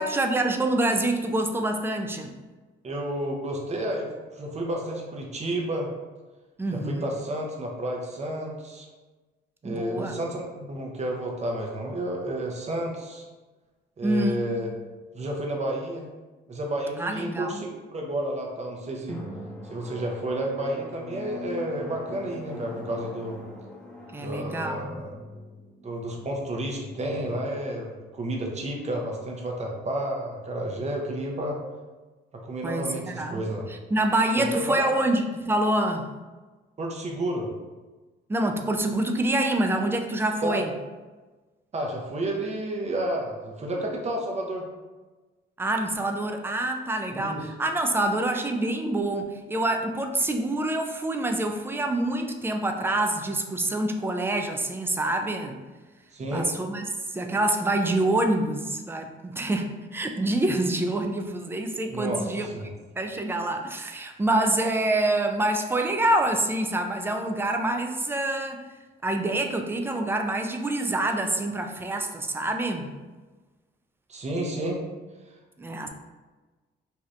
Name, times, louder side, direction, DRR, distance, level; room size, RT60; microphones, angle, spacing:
voice 1, 0.0-2.3 6.6-7.1 9.6-10.1 14.0-14.4 17.0-17.6 24.1-25.0 32.6-33.4 33.9-36.1 38.3-40.7 45.6-55.6 56.3-56.8 57.1-62.5 63.0-68.6 69.0-72.9 75.6-75.9, right 1 dB, 10° right, 4 dB, 0.3 m, -26 dB
voice 2, 2.8-4.1 4.3-5.9 6.7-8.9 9.6-13.3 14.0-14.7 15.1-16.1 16.5-19.2 19.6-23.4 24.2-25.1 25.8-31.6 32.3-33.7 34.4-34.9 36.8-37.5 40.4-40.6 41.7-44.7 47.1-47.5 56.1-56.5 61.9-62.7 74.1-74.8, right 1 dB, 35° right, 0 dB, 0.7 m, -31 dB
Drum, 19.1-28.4, left 1 dB, 5° left, 0.8 m, -42 dB
2.8 x 2.4 x 3.2 m, 1.3 s
cardioid pair, 90°, 20 cm